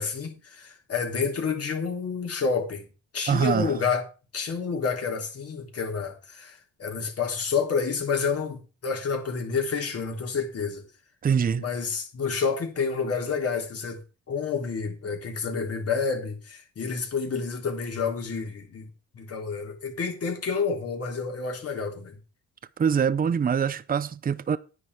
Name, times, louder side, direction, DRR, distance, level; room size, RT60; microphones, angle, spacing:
voice 1, 0.0-2.9 3.1-4.0 4.3-10.8 11.6-14.0 14.3-18.9 19.1-22.2, left 5 dB, 50° left, 3.7 m, -29 dB
voice 2, 3.3-3.7 11.2-11.6 22.8-24.6, right 7 dB, 30° right, 0.6 m, -24 dB
9.9 x 9.8 x 4.8 m
cardioid pair, 90°, 30 cm